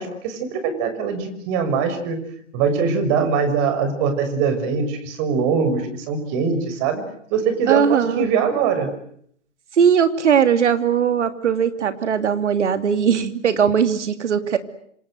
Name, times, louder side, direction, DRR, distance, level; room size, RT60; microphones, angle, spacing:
voice 1, 0.0-2.2 2.5-7.0 7.3-8.9, right 6 dB, 35° right, 9 dB, 6.2 m, -22 dB
voice 2, 7.7-8.3 9.8-14.6, right 7 dB, 70° right, 9 dB, 2.9 m, -19 dB
27.5 x 26.5 x 8.0 m, 0.66 s
hypercardioid pair, 125°, 37 cm